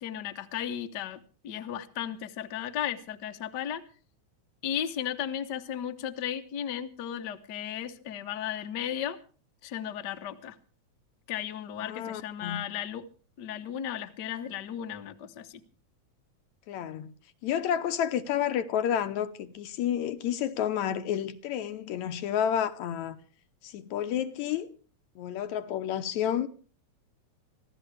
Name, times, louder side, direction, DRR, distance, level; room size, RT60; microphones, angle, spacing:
voice 1, 0.0-3.8 4.6-9.2 9.6-10.6 11.3-13.1 13.4-15.6, left 10 dB, 55° left, 1.2 m, -35 dB
voice 2, 11.8-12.6 16.7-17.1 17.4-23.2 23.6-24.7 25.2-26.5, left 9 dB, 80° left, 2.3 m, -30 dB
24.5 x 15.0 x 3.4 m
omnidirectional pair, 3.3 m